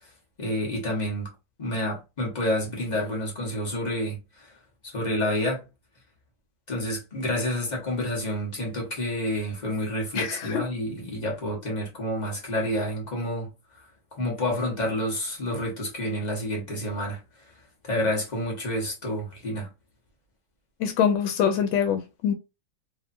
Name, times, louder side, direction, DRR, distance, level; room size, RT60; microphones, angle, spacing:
voice 1, 0.4-1.3 1.6-4.5 4.8-5.6 6.7-13.5 14.1-17.2 17.8-19.7, left 1 dB, 30° left, 0.9 m, -29 dB
voice 2, 10.1-10.6 20.8-22.3, left 8 dB, 90° left, 1.4 m, -24 dB
3.2 x 2.7 x 2.5 m
omnidirectional pair, 2.1 m